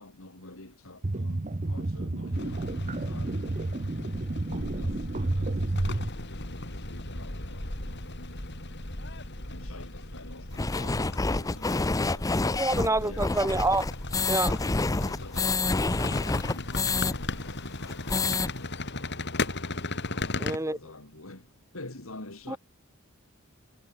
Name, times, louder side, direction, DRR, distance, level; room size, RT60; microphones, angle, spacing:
voice 1, 0.0-3.4 4.5-8.7 9.5-13.5 14.2-14.5 14.9-19.6 20.1-22.6, left 2 dB, 80° left, 3.6 m, -47 dB
sound 1, 1.0-6.1, right 2 dB, 35° right, 0.8 m, -30 dB
sound 2, 2.3-20.6, left 2 dB, 55° left, 5.4 m, -37 dB
sound 3, 10.6-17.1 17.5-17.6 17.9-18.5, left 3 dB, 15° left, 0.5 m, -28 dB
voice 2, 12.6-13.9 14.3-14.5 20.4-20.8 22.5-22.6, right 2 dB, 15° right, 2.3 m, -27 dB
head